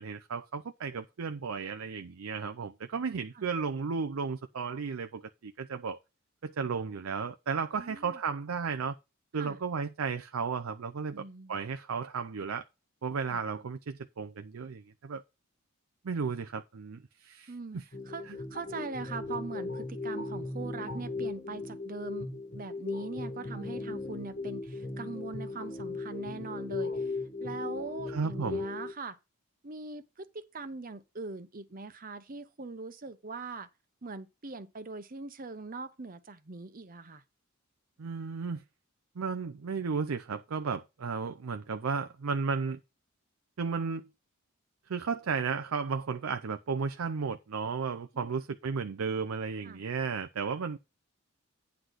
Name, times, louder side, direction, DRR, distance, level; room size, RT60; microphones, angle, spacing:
voice 1, 0.0-6.0 6.4-9.0 9.3-12.6 13.0-15.2 16.0-17.8 18.3-18.4 28.1-28.6 38.0-38.6 39.2-42.8 43.6-44.1 44.9-50.8, right 5 dB, 90° right, 0.5 m, -34 dB
voice 2, 7.8-8.2 9.4-9.6 11.1-11.6 13.3-13.4 17.5-29.2 29.6-33.7 34.0-37.2 48.1-48.3 49.6-49.8, right 3 dB, 40° right, 0.8 m, -42 dB
sound 1, 17.9-28.9, left 3 dB, 45° left, 1.4 m, -37 dB
9.6 x 4.0 x 6.4 m
head